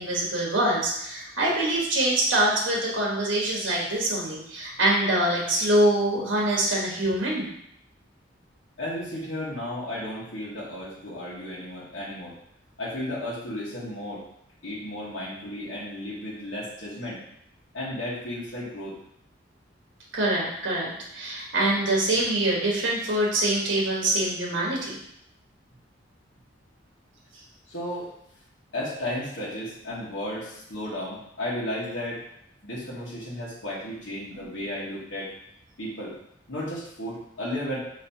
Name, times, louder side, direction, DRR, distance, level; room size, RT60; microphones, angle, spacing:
voice 1, 0.0-7.4 20.1-24.9, right 1 dB, 90° right, -3 dB, 1.3 m, -24 dB
voice 2, 8.8-12.4 12.8-14.2 14.6-17.2 17.7-19.0 27.7-28.1 28.7-32.2 32.6-35.3 35.8-36.2 36.5-37.8, left 1 dB, 80° left, -6 dB, 1.3 m, -34 dB
5.1 x 3.3 x 2.8 m, 0.73 s
head